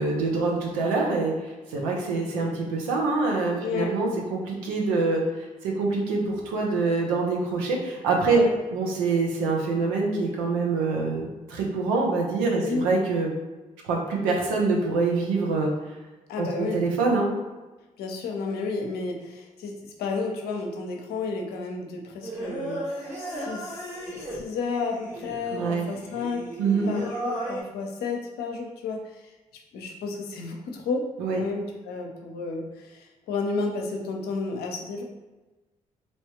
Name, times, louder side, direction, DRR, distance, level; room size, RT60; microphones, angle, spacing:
voice 1, 0.0-1.3 1.7-5.2 5.6-8.4 8.7-13.3 13.8-15.7 16.4-17.3 25.5-25.8 26.6-26.9 31.2-31.4, right 3 dB, 80° right, -1 dB, 0.6 m, -25 dB
voice 2, 12.6-12.9 16.3-16.9 18.0-22.8 23.2-26.4 26.9-29.2 29.7-31.1 31.4-35.0, left 4 dB, 70° left, 1 dB, 0.6 m, -32 dB
Singing, 22.2-27.6, right 1 dB, 45° right, 1.4 m, -35 dB
3.2 x 2.9 x 2.9 m, 1.2 s
hypercardioid pair, 40°, 17 cm